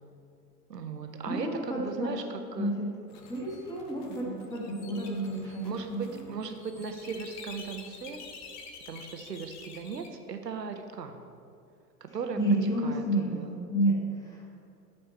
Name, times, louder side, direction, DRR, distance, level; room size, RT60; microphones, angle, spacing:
voice 1, 0.7-2.7 4.1-4.5 5.4-8.2 8.9-11.2 12.1-13.6, right 5 dB, 80° right, 6 dB, 0.9 m, -38 dB
voice 2, 1.3-2.1 2.6-2.9 3.3-6.0 12.4-14.5, right 1 dB, 5° left, -4 dB, 1.7 m, -30 dB
sound 1, 3.1-10.1, left 4 dB, 35° left, 0.9 m, -48 dB
13.0 x 4.5 x 4.3 m, 2.4 s
figure-of-eight pair, 90°, 48 cm